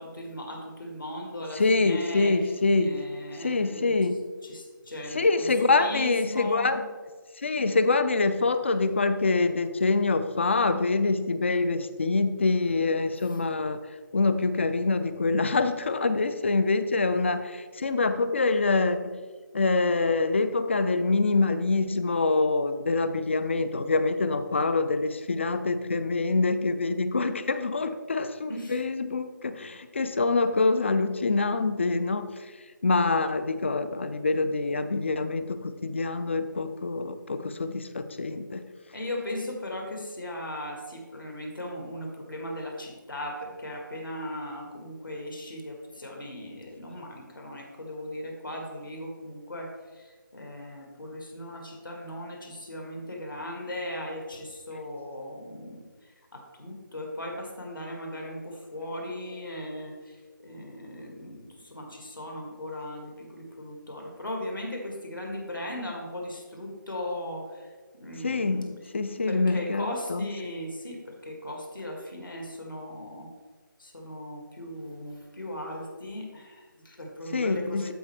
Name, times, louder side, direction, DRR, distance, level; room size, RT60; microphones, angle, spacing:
voice 1, 0.0-2.4 2.8-3.9 4.5-6.8 28.5-28.8 38.9-55.8 56.3-67.7 67.9-68.7 69.3-73.3 73.8-77.9, left 1 dB, 75° left, 1 dB, 1.8 m, -38 dB
voice 2, 1.5-3.0 3.4-4.2 5.1-6.8 7.4-13.8 14.1-19.2 19.5-32.4 32.8-38.7 68.2-68.7 68.9-70.3 77.3-77.9, left 3 dB, 35° left, 12 dB, 0.4 m, -25 dB
13.0 x 4.3 x 3.2 m, 1.5 s
figure-of-eight pair, 155°, 11 cm